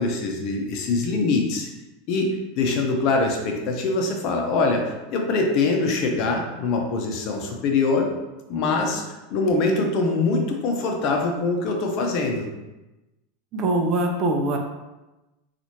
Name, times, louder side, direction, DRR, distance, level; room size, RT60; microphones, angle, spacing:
voice 1, 0.0-1.7 2.1-2.3 2.6-8.1 8.5-12.5, left 3 dB, 50° left, 2 dB, 0.7 m, -23 dB
voice 2, 13.5-14.6, right 2 dB, 40° right, 2 dB, 0.6 m, -22 dB
4.1 x 2.5 x 2.9 m, 1.0 s
hypercardioid pair, 85°, 0 cm